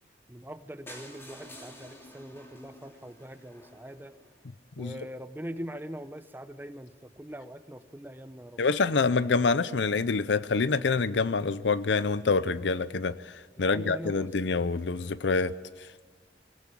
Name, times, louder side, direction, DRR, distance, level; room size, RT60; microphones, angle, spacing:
voice 1, 0.3-4.1 4.8-8.6 13.6-14.3, equal, 10° right, 0.7 m, -42 dB
sound 1, 0.9-4.8 5.4-5.5 5.7-5.8 6.1-6.2 6.4-6.5, left 1 dB, 15° left, 2.8 m, -50 dB
voice 2, 8.6-15.5, left 4 dB, 85° left, 0.6 m, -26 dB
22.5 x 18.0 x 8.4 m
head